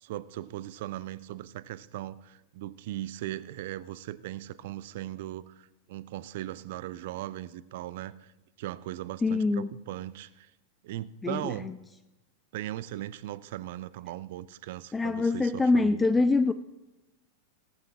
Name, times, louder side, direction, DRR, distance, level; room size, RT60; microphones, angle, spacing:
voice 1, 0.0-8.3 8.6-10.5 10.8-11.7 12.5-16.2, right 14 dB, 50° right, 17 dB, 0.5 m, -38 dB
voice 2, 9.2-9.7 11.2-11.4 14.9-16.5, left 3 dB, 10° left, 12 dB, 0.4 m, -24 dB
18.5 x 14.0 x 2.4 m, 1.0 s
figure-of-eight pair, 90°, 0 cm